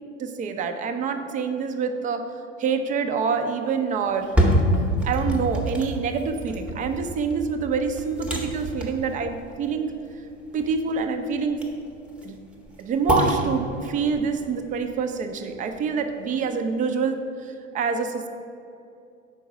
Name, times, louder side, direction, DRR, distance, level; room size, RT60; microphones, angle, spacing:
voice 1, 0.2-4.4 5.0-10.0 10.5-11.7 12.2-12.4 12.8-18.3, right 5 dB, 20° right, 6 dB, 0.4 m, -26 dB
sound 1, 4.1-16.1 16.5-16.6, equal, 5° right, 0.8 m, -27 dB
5.4 x 4.5 x 4.8 m, 2.6 s
figure-of-eight pair, 70°, 36 cm